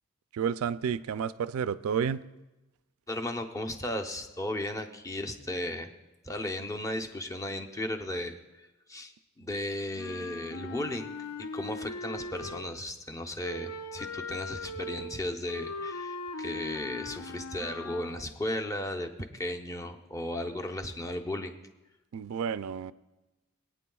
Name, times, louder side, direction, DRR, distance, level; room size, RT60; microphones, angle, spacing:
voice 1, 0.3-2.2 22.1-22.9, right 7 dB, 75° right, 15 dB, 0.3 m, -31 dB
voice 2, 3.1-5.9 6.2-8.4 8.9-9.1 9.4-11.2 11.5-21.6, left 1 dB, 15° left, 4 dB, 0.7 m, -35 dB
Wind instrument woodwind instrument, 9.9-12.8 13.4-18.2, left 2 dB, 90° left, 0.5 m, -39 dB
22.5 x 9.1 x 2.3 m, 1.1 s
head